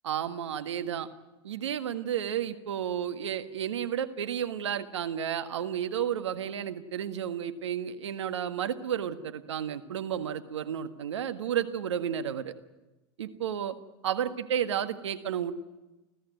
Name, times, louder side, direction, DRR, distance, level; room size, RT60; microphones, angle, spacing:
voice 1, 0.0-1.1 1.4-12.5 13.2-13.8 14.0-15.5, right 9 dB, 85° right, 10 dB, 1.7 m, -32 dB
30.0 x 14.5 x 9.3 m, 1.0 s
hypercardioid pair, 90°, 15 cm